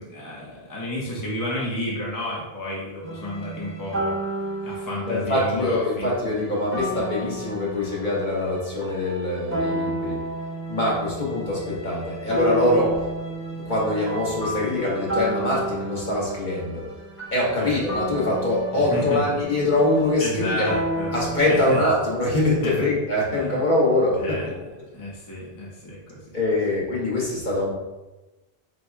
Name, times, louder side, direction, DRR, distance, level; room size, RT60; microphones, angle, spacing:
voice 1, 0.0-4.2 4.6-6.1 17.6-17.8 18.9-19.2 20.2-21.1 21.5-21.8 22.6-22.9 23.3-23.6 24.2-24.5 24.9-26.4, left 1 dB, 20° left, -5 dB, 0.7 m, -31 dB
sound 1, 3.0-21.6, right 1 dB, 15° right, 0.5 m, -32 dB
voice 2, 5.1-10.2 10.7-13.0 13.6-16.8 17.3-20.7 21.1-24.7 26.3-27.7, left 1 dB, 50° left, -5 dB, 1.3 m, -23 dB
4.2 x 2.2 x 4.5 m, 1.1 s
omnidirectional pair, 1.1 m